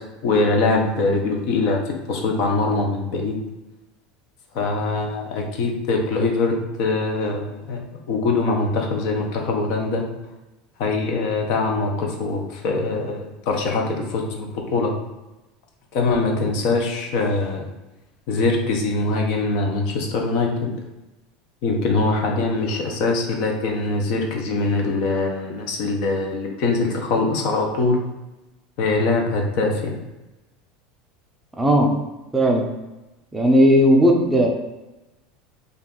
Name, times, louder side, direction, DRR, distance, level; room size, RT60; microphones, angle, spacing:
voice 1, 0.2-3.4 4.5-7.8 8.1-10.0 10.8-14.9 15.9-17.7 18.3-20.7 21.6-28.0 28.8-30.0, left 3 dB, 60° left, 1 dB, 0.6 m, -23 dB
voice 2, 31.6-31.9 32.3-32.7 33.3-34.5, equal, 10° right, 0 dB, 0.4 m, -16 dB
2.5 x 2.3 x 3.6 m, 1.0 s
supercardioid pair, 135°, 0 cm